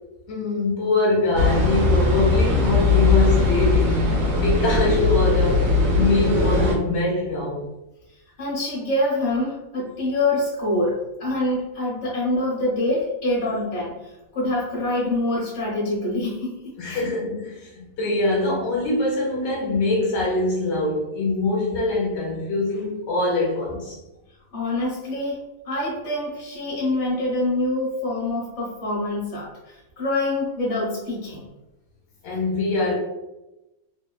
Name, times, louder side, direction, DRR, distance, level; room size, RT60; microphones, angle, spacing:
voice 1, 0.3-7.7 16.8-24.0 32.2-33.0, left 2 dB, 70° left, -3 dB, 1.3 m, -23 dB
sound 1, 1.4-6.8, left 3 dB, 70° right, 1.0 m, -19 dB
voice 2, 8.4-13.9 14.3-16.5 16.8-17.0 24.5-25.4 25.6-31.4, left 1 dB, 35° left, -6 dB, 0.7 m, -25 dB
3.1 x 2.1 x 2.2 m, 0.99 s
omnidirectional pair, 2.1 m